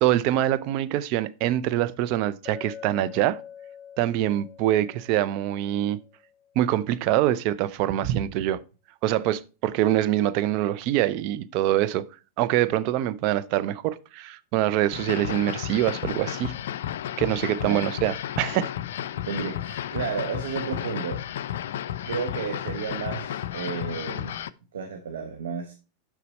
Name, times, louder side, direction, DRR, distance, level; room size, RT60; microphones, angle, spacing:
voice 1, 0.0-3.4 4.0-6.0 6.6-8.6 9.0-12.1 12.4-16.5 17.2-18.7, right 13 dB, 45° right, 0.5 m, -24 dB
Chink clink, 2.5-6.5, left 8 dB, 20° left, 1.1 m, -45 dB
sound 1, 14.9-24.5, left 11 dB, 60° left, 0.3 m, -33 dB
voice 2, 19.3-21.2 22.1-24.4 24.7-25.7, right 5 dB, 65° right, 0.8 m, -32 dB
6.8 x 6.1 x 4.0 m
figure-of-eight pair, 90°, 0 cm